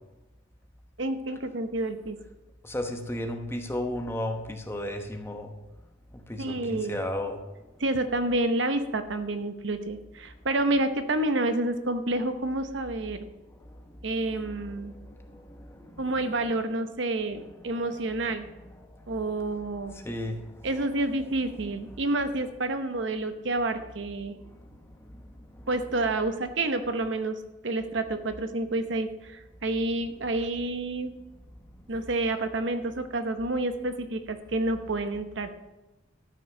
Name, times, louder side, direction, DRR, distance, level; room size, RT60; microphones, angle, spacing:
voice 1, 1.0-2.2 6.4-7.0 7.8-13.3 14.0-14.9 16.0-18.5 19.1-19.9 20.6-24.4 25.7-27.4 27.6-31.1 31.9-35.5, right 2 dB, 65° right, 9 dB, 0.9 m, -29 dB
voice 2, 2.6-5.5 6.1-7.4 13.7-14.0 14.8-16.1 19.9-20.7 24.4-25.2 25.5-25.7, left 1 dB, 10° left, 4 dB, 1.0 m, -35 dB
13.0 x 6.1 x 6.0 m, 1.1 s
head